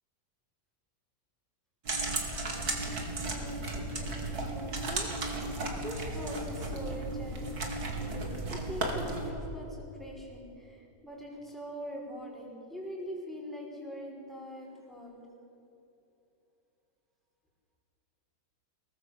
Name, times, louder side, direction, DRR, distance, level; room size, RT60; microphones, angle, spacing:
sound 1, 1.9-9.3, right 2 dB, 60° right, 3.2 m, -34 dB
voice 1, 3.2-15.2, equal, ahead, -2 dB, 5.0 m, -43 dB
22.5 x 18.0 x 7.9 m, 2.9 s
omnidirectional pair, 1.9 m